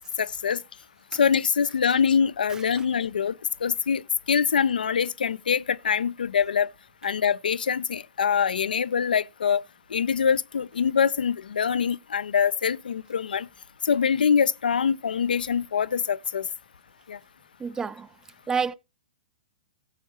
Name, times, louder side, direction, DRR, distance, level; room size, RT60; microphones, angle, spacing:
voice 1, 0.2-0.6 1.1-3.3 3.6-6.7 7.0-9.6 9.9-13.5 13.8-16.5 17.1-17.2, left 7 dB, 75° left, 0.5 m, -24 dB
voice 2, 17.6-18.1 18.5-18.7, right 6 dB, 10° right, 0.4 m, -28 dB
17.5 x 7.1 x 3.0 m
figure-of-eight pair, 110°, 5 cm